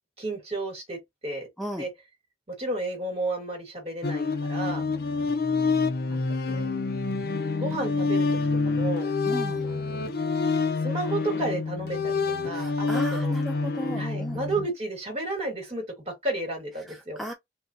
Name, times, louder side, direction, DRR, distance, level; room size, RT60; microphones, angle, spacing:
voice 1, 0.2-1.5 1.8-1.9 2.5-4.8 6.1-6.7 7.5-8.3 8.6-9.1 9.5-10.0 10.8-13.3 14.0-17.2, right 2 dB, 35° right, 1.8 m, -32 dB
sound 1, 4.0-14.7, left 4 dB, 55° left, 0.5 m, -27 dB
voice 2, 9.2-9.7 12.5-14.4 16.9-17.3, equal, ahead, 0.4 m, -35 dB
3.5 x 2.9 x 2.7 m
head